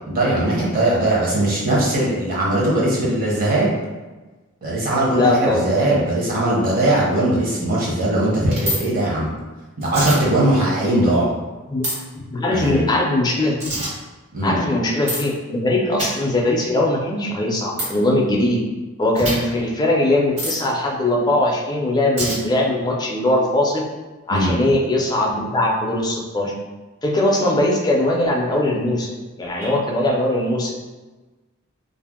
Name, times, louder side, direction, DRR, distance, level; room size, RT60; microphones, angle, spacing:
voice 1, 0.1-3.7 4.6-9.3 9.8-11.3 12.5-12.9 14.3-14.6 24.3-24.5 29.6-29.7, right 1 dB, 45° right, -5 dB, 0.9 m, -20 dB
voice 2, 5.1-5.7 11.7-11.9 12.3-13.7 14.4-18.6 19.0-23.8 24.3-26.5 27.0-29.1 29.4-30.7, left 1 dB, 20° left, -1 dB, 0.4 m, -20 dB
sound 1, 8.5-8.8 9.8-10.2 11.8-11.9 13.6-13.9 15.1-15.2 16.0-16.1 17.8-17.9 19.1-19.3 20.4-20.6 22.2-22.4, equal, 60° right, 1.4 m, -24 dB
2.6 x 2.0 x 3.5 m, 1.2 s
head